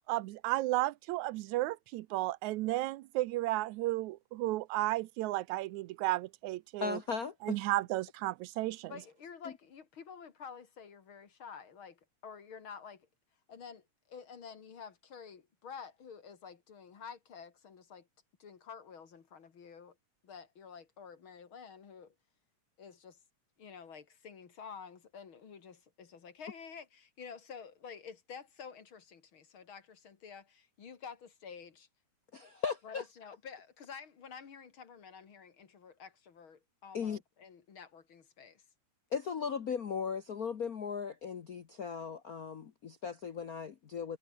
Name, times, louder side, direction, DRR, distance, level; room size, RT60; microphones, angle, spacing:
voice 1, 0.1-7.0 7.4-8.9, right 17 dB, 80° right, 2.0 m, -33 dB
voice 2, 6.8-7.6 32.3-33.0 36.9-37.2 39.1-44.2, left 6 dB, 75° left, 0.8 m, -37 dB
voice 3, 8.9-13.1 13.5-18.1 18.4-20.0 20.2-22.1 22.8-23.2 23.6-31.9 32.8-38.6, left 6 dB, 45° left, 2.6 m, -50 dB
omnidirectional pair, 3.4 m